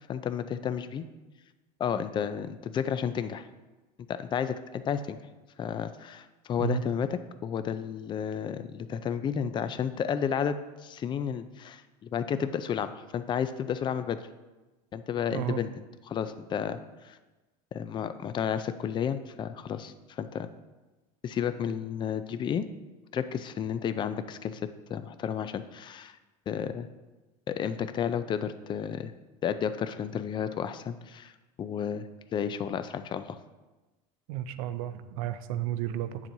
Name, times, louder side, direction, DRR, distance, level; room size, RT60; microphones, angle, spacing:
voice 1, 0.1-1.0 1.8-3.4 4.1-5.2 5.6-10.6 10.8-14.2 14.9-15.7 16.1-17.2 17.7-20.5 21.2-22.7 23.1-24.6 24.9-26.2 26.5-26.9 27.5-29.1 29.4-31.3 31.6-32.1 32.3-33.4, left 8 dB, 25° left, 11 dB, 0.4 m, -32 dB
voice 2, 34.3-36.2, right 12 dB, 75° right, 12 dB, 0.6 m, -32 dB
9.1 x 7.3 x 2.7 m, 1.1 s
supercardioid pair, 125°, 18 cm